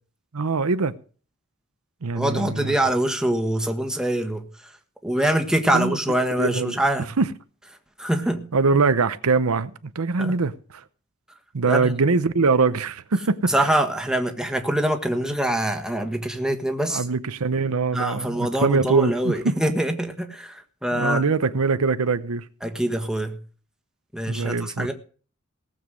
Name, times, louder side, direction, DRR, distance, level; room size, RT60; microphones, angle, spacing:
voice 1, 0.3-0.9 2.0-2.7 5.7-6.0 6.4-6.8 7.2-7.3 8.5-10.5 11.5-13.5 16.9-19.6 20.9-22.4 24.3-24.9, right 4 dB, 90° right, 0.8 m, -22 dB
voice 2, 2.1-4.4 5.0-7.1 8.0-8.5 10.2-10.3 11.6-11.9 13.5-17.0 17.9-21.2 22.6-23.4 24.1-24.9, right 1 dB, 5° right, 1.5 m, -24 dB
18.0 x 7.4 x 6.3 m
head